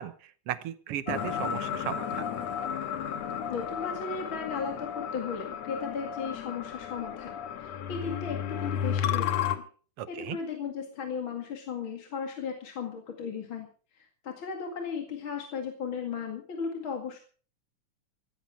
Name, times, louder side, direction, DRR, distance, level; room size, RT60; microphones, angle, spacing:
voice 1, 0.0-2.3 10.0-10.4, right 11 dB, 65° right, 13 dB, 1.7 m, -36 dB
sound 1, 1.1-9.6, left 8 dB, 65° left, 2.2 m, -33 dB
voice 2, 3.5-9.6 10.1-13.7 14.2-17.2, left 6 dB, 45° left, 3 dB, 2.7 m, -36 dB
16.5 x 14.0 x 4.8 m, 0.41 s
omnidirectional pair, 3.5 m